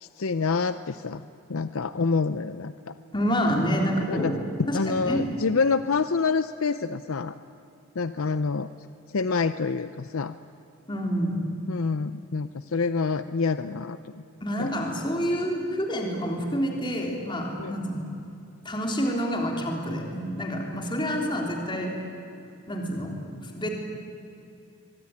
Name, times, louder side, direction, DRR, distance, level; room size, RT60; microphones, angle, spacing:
voice 1, 0.0-1.2 1.5-2.9 3.6-3.7 4.1-4.3 4.7-7.3 8.0-8.7 9.1-10.4 11.7-14.2 14.6-14.7 17.6-17.7, left 4 dB, 70° left, 12 dB, 0.6 m, -27 dB
voice 2, 3.1-5.3 10.9-11.4 14.4-18.1 18.7-22.0 22.7-23.2 23.4-23.7, equal, 20° left, 1 dB, 3.6 m, -28 dB
23.5 x 23.0 x 9.7 m, 2.7 s
head